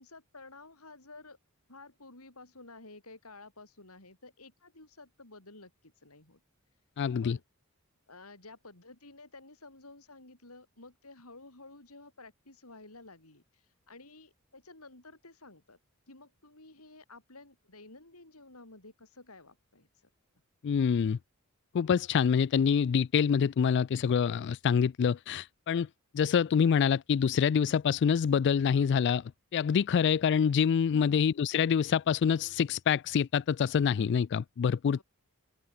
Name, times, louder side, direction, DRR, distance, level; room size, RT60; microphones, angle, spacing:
voice 1, 0.0-1.4 1.7-6.4 7.2-7.4 8.1-15.8 16.1-19.9 35.0-35.1, left 2 dB, 90° left, 7.5 m, -52 dB
voice 2, 7.0-7.4 20.6-21.2 21.7-25.9 26.1-29.2 29.5-35.0, left 7 dB, 55° left, 0.3 m, -26 dB
open air
head